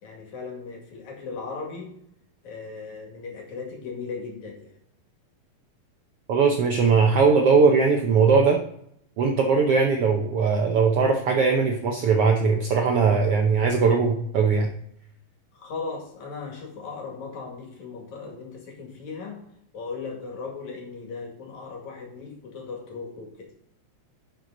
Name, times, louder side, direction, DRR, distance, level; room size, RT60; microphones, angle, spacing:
voice 1, 0.0-1.9 2.4-4.7 15.5-19.4 19.7-23.5, left 4 dB, 65° left, 1 dB, 3.5 m, -37 dB
voice 2, 6.3-8.6 9.2-14.7, right 5 dB, 70° right, 2 dB, 1.4 m, -20 dB
11.0 x 6.4 x 3.9 m, 0.72 s
omnidirectional pair, 3.7 m